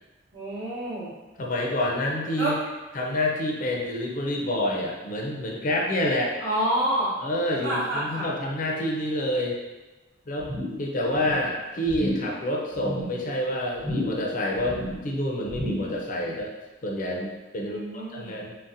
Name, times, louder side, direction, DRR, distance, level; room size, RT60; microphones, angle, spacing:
voice 1, 0.3-1.1 2.4-2.5 6.4-7.1 7.6-8.3 17.6-18.4, right 1 dB, 60° right, -13 dB, 0.8 m, -28 dB
voice 2, 1.4-2.6 2.9-6.4 7.2-9.6 10.3-10.5 10.8-16.5 16.8-18.6, left 1 dB, 45° left, -1 dB, 0.5 m, -28 dB
sound 1, 10.4-10.9 11.1-11.5 11.9-12.4 12.7-13.2 13.8-14.3 14.6-15.1 15.5-16.0 16.4-16.5, equal, 10° right, 0.5 m, -32 dB
3.9 x 2.1 x 2.5 m, 1.2 s
head